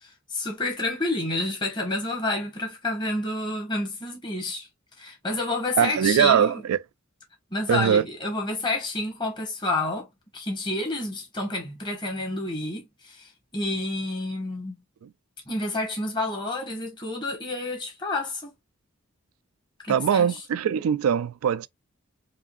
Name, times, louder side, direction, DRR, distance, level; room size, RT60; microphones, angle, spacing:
voice 1, 0.0-4.7 5.0-6.6 7.5-10.1 10.3-14.8 15.5-18.5 19.8-20.4, left 2 dB, 20° left, 1.5 m, -29 dB
voice 2, 5.8-6.8 7.7-8.0 15.0-15.1 19.9-21.7, right 8 dB, 85° right, 0.3 m, -21 dB
5.0 x 2.6 x 2.5 m
head